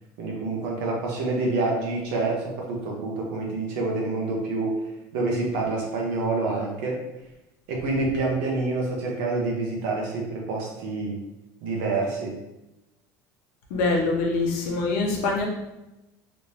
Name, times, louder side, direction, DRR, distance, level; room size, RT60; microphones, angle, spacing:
voice 1, 0.2-4.7 5.1-7.0 7.7-11.2 11.6-12.4, right 3 dB, 65° right, -1 dB, 1.0 m, -27 dB
voice 2, 13.7-15.4, left 3 dB, 70° left, 0 dB, 0.9 m, -24 dB
3.3 x 3.2 x 2.8 m, 0.95 s
cardioid pair, 180°, 8 cm